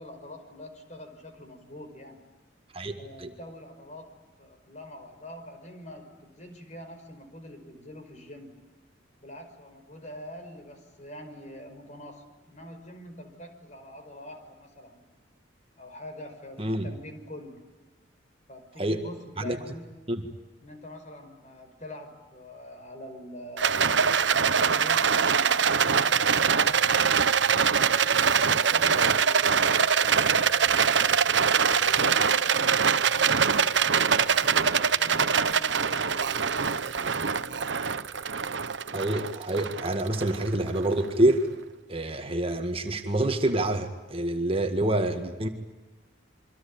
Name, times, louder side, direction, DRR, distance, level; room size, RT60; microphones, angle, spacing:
voice 1, 0.0-2.2 3.0-4.1 4.4-8.5 9.2-15.0 15.8-17.6 18.5-19.9 20.6-24.1 24.5-26.8 27.1-31.2 32.0-37.7, left 1 dB, 40° left, 6 dB, 5.2 m, -44 dB
voice 2, 2.7-3.3 16.6-16.9 18.8-19.0 19.4-19.6 20.1-20.2 38.9-41.5 41.9-45.5, right 1 dB, 30° right, 6 dB, 1.9 m, -27 dB
Rattle, 23.6-40.9, right 6 dB, 70° right, 1.0 m, -23 dB
27.5 x 24.5 x 8.7 m, 1.2 s
head